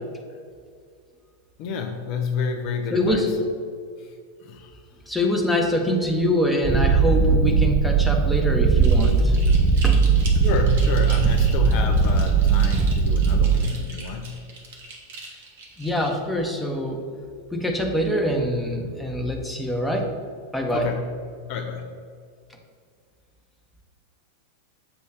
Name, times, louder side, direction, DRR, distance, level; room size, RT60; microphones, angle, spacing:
voice 1, 1.6-3.3 4.0-4.2 4.4-4.8 10.4-14.5 20.7-21.1 21.5-22.0, left 5 dB, 45° left, 4 dB, 0.5 m, -29 dB
voice 2, 2.9-3.3 5.1-9.4 9.8-10.1 15.8-17.0 17.5-20.1 20.5-20.9, equal, ahead, 1 dB, 0.9 m, -24 dB
Purr, 6.6-13.6, right 5 dB, 25° right, 0.5 m, -19 dB
sound 1, 8.8-16.1, right 3 dB, 55° right, 1.2 m, -41 dB
7.6 x 3.1 x 5.8 m, 2.1 s
figure-of-eight pair, 90°, 0 cm